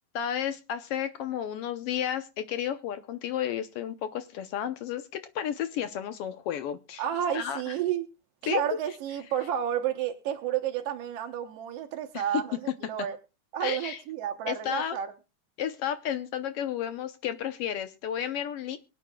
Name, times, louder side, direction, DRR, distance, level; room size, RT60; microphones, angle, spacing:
voice 1, 0.1-7.0 7.3-7.7 8.4-8.6 12.1-12.2 13.6-14.0 14.5-15.0 15.6-18.8, left 9 dB, 75° left, 10 dB, 1.4 m, -32 dB
voice 2, 7.0-8.0 8.4-13.2 13.5-15.1, right 10 dB, 65° right, 4 dB, 1.7 m, -31 dB
23.5 x 9.0 x 2.2 m, 0.29 s
omnidirectional pair, 3.4 m